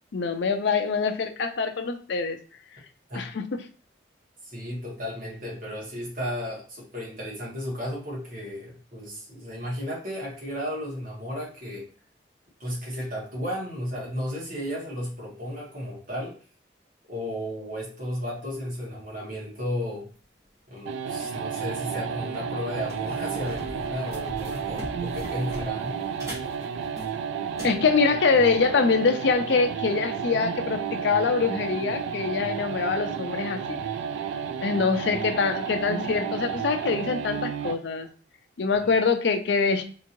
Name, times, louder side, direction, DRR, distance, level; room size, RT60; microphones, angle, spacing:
voice 1, 0.1-2.4 3.1-3.6 27.6-33.8 34.6-38.1 38.6-39.8, left 4 dB, 75° left, 7 dB, 0.4 m, -24 dB
voice 2, 4.4-11.9 12.6-16.3 17.1-20.1 20.7-26.0, equal, 45° right, -5 dB, 1.3 m, -34 dB
sound 1, 20.9-37.9, right 7 dB, 85° right, 0.3 m, -32 dB
sound 2, 21.2-21.4 21.9-22.0 22.3-27.8, equal, 15° right, 1.0 m, -40 dB
3.6 x 2.9 x 2.6 m, 0.40 s
head